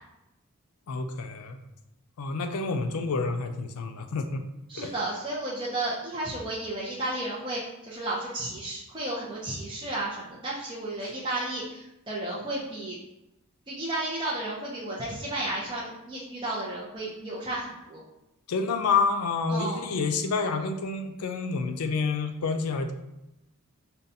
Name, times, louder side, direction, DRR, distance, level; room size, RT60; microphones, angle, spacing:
voice 1, 0.9-1.6 2.2-4.4 4.7-4.9 18.5-22.9, left 4 dB, 90° left, 7 dB, 0.4 m, -28 dB
voice 2, 4.7-13.0 13.7-18.0 19.5-19.8, right 1 dB, 20° right, -7 dB, 0.5 m, -33 dB
5.3 x 2.2 x 2.6 m, 0.91 s
head